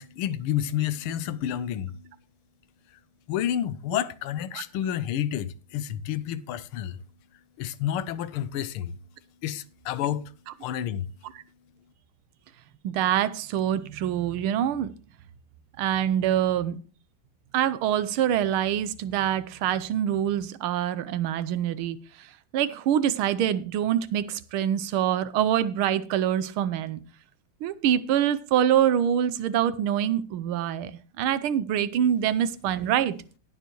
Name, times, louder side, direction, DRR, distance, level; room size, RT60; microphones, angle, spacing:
voice 1, 0.0-2.1 3.3-7.0 7.6-8.9 9.4-10.3 10.6-11.1, left 10 dB, 80° left, 1.6 m, -30 dB
voice 2, 12.8-14.9 15.8-16.8 17.5-27.0 27.6-30.9 31.2-33.2, right 10 dB, 80° right, 1.6 m, -25 dB
19.0 x 6.8 x 3.1 m
omnidirectional pair, 2.4 m